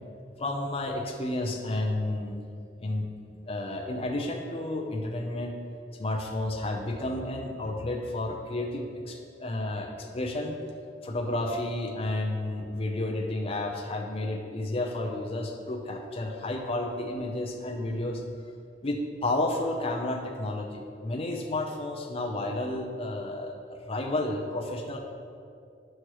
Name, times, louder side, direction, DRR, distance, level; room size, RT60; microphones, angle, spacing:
voice 1, 0.4-2.4 2.8-3.1 3.5-5.5 5.9-10.6 11.0-18.2 18.8-25.0, left 1 dB, 35° left, 1 dB, 0.6 m, -31 dB
9.7 x 6.4 x 3.1 m, 2.4 s
head